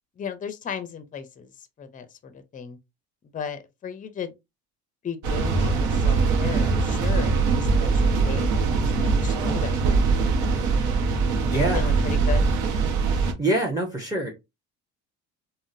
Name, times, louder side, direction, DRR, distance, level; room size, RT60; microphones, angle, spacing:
voice 1, 0.2-1.5 1.8-2.8 3.3-4.3 5.0-8.7 9.0-9.8 10.5-10.8 11.5-12.5, left 7 dB, 25° left, 0.5 m, -35 dB
sound 1, 5.2-13.3, right 4 dB, 65° right, 0.8 m, -22 dB
voice 2, 10.5-10.9 11.5-11.9 13.4-14.3, right 1 dB, 10° right, 0.7 m, -26 dB
3.6 x 2.1 x 2.5 m
cardioid pair, 105°, 32 cm